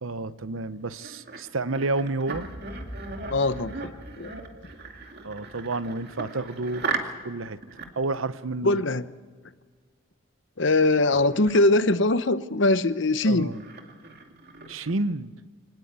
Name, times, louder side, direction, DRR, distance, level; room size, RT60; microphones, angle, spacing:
voice 1, 0.0-2.5 5.2-6.8 7.2-7.6 8.0-8.8 13.2-13.6 14.7-15.3, right 2 dB, 70° right, 14 dB, 0.9 m, -30 dB
sound 1, 0.7-7.3 7.6-8.1 10.8-10.9 11.1-11.6 12.7-12.8 13.2-14.9, right 4 dB, 50° right, 2.4 m, -37 dB
Boom, 2.3-6.6, equal, 10° left, 2.9 m, -44 dB
voice 2, 3.3-4.3 8.6-9.1 10.6-13.5, left 2 dB, 55° left, 13 dB, 0.9 m, -22 dB
25.0 x 18.5 x 8.2 m, 1.6 s
head